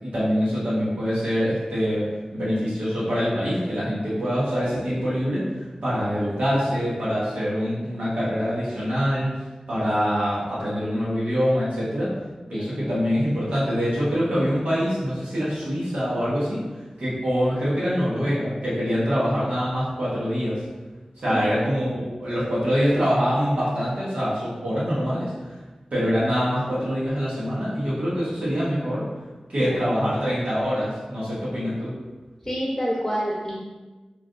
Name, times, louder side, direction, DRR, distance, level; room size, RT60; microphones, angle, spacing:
voice 1, 0.0-9.3 9.7-12.1 12.5-16.6 17.0-20.6 21.2-25.5 25.9-29.0 29.5-31.9, equal, 85° right, -10 dB, 1.0 m, -24 dB
voice 2, 21.3-21.6 29.6-29.7 32.4-33.6, equal, 20° left, -6 dB, 0.7 m, -27 dB
3.1 x 2.4 x 2.5 m, 1.2 s
wide cardioid pair, 45°, 2 cm